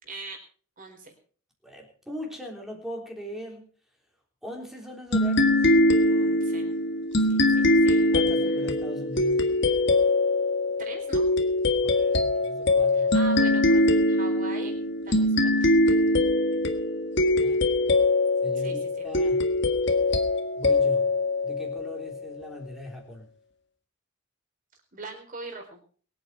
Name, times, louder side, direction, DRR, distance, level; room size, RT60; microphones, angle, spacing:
voice 1, 0.0-0.4 0.8-1.1 6.0-6.8 7.2-8.1 10.8-11.3 12.9-14.7 15.0-15.7 18.6-19.1 24.9-25.8, right 3 dB, 40° right, 4 dB, 4.3 m, -41 dB
voice 2, 1.6-3.7 4.4-5.6 8.1-9.5 11.8-13.1 17.4-17.6 18.4-19.4 20.6-21.1 21.4-23.3, left 1 dB, ahead, 0 dB, 3.5 m, -39 dB
sound 1, 5.1-22.3, left 2 dB, 55° left, 1.7 m, -22 dB
23.0 x 8.8 x 4.6 m, 0.42 s
head